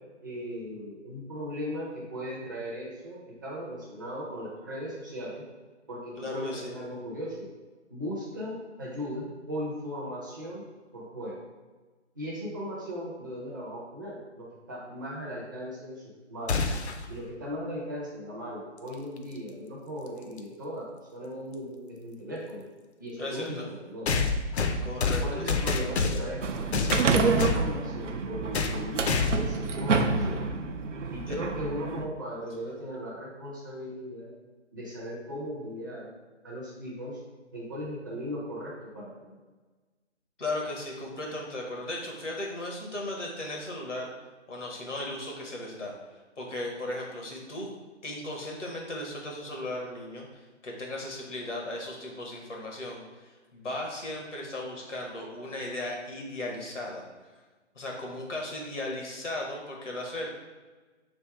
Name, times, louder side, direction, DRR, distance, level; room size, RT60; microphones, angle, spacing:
voice 1, 0.2-5.4 5.9-7.5 7.9-10.6 10.9-11.4 12.1-16.6 17.1-22.7 23.0-24.1 25.2-30.4 31.1-34.3 34.7-36.1 36.4-37.2 37.5-39.4, equal, 15° right, -5 dB, 0.4 m, -37 dB
voice 2, 6.2-6.7 23.2-23.7 24.8-25.5 31.3-31.4 40.4-44.1 44.5-45.9 46.4-47.7 48.0-53.0 53.5-57.0 57.7-60.3, left 1 dB, 90° left, -1 dB, 1.3 m, -36 dB
sound 1, 16.5-17.0 19.2-19.3 20.4-20.5 24.1-26.4 26.7-27.7 28.5-28.8 29.0-29.5, left 4 dB, 65° left, 0.5 m, -27 dB
sound 2, 26.4-32.1, right 4 dB, 85° right, 0.6 m, -28 dB
3.4 x 2.7 x 4.6 m, 1.3 s
figure-of-eight pair, 140°, 36 cm